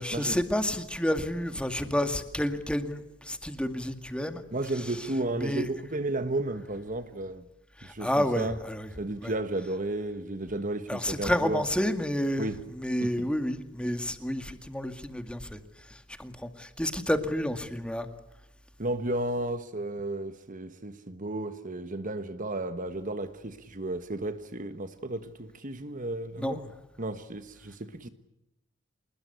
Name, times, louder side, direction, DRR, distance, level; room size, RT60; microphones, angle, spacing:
voice 1, 0.0-4.4 5.4-5.7 7.8-8.9 9.2-9.3 10.9-15.6 15.9-18.1 26.4-26.6, left 1 dB, 5° left, 2.1 m, -30 dB
voice 2, 4.5-7.5 7.8-8.6 9.0-11.6 12.4-12.6 13.0-13.3 18.8-26.7 27.0-28.1, right 2 dB, 45° right, 1.4 m, -33 dB
26.5 x 20.5 x 8.3 m
head